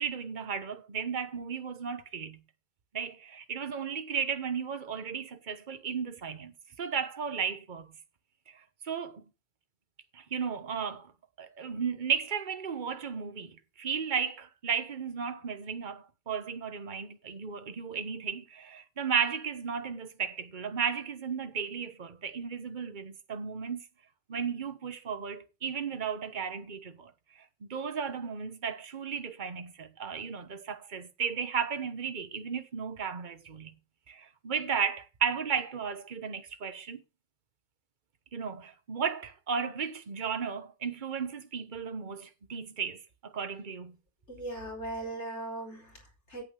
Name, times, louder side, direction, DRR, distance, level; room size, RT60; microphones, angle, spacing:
voice 1, 0.0-2.4 2.9-7.9 8.8-9.2 10.1-11.1 11.4-23.8 24.3-27.1 27.7-33.7 34.1-37.0 38.3-44.0, right 6 dB, 45° right, 1.2 m, -34 dB
voice 2, 44.3-46.4, right 2 dB, 75° left, 4.8 m, -39 dB
9.4 x 8.6 x 6.3 m
omnidirectional pair, 1.2 m